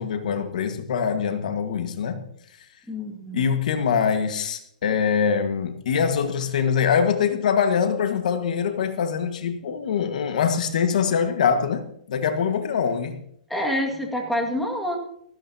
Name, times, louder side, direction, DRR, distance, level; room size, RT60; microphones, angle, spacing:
voice 1, 0.0-2.2 3.3-13.2, left 7 dB, 60° left, 1.6 m, -23 dB
voice 2, 2.9-3.5 13.5-15.0, left 1 dB, 5° left, 2.0 m, -27 dB
17.5 x 16.0 x 2.9 m
hypercardioid pair, 150°, 5 cm